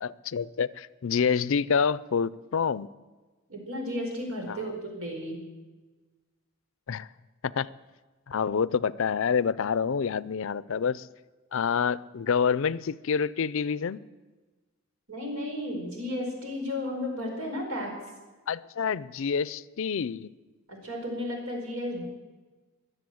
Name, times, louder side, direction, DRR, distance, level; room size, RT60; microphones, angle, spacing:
voice 1, 0.0-2.9 4.5-4.6 6.9-7.1 7.4-7.7 8.3-11.1 11.5-14.0 18.5-20.3, left 6 dB, 65° left, 0.4 m, -27 dB
voice 2, 3.5-5.4 15.1-17.9 20.7-22.1, left 1 dB, 90° right, 4.9 m, -33 dB
22.0 x 7.9 x 7.8 m
head